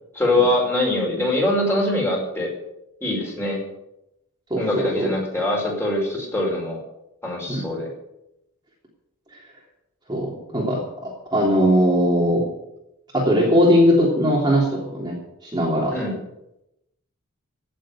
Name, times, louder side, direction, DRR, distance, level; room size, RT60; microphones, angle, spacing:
voice 1, 0.1-2.5 3.0-3.6 4.6-6.8 7.2-7.9 15.9-16.1, left 1 dB, 10° left, -2 dB, 5.0 m, -23 dB
voice 2, 4.5-5.1 7.5-7.6 10.1-12.5 13.1-16.0, equal, 20° right, -3 dB, 3.2 m, -20 dB
16.0 x 7.7 x 8.9 m, 0.86 s
head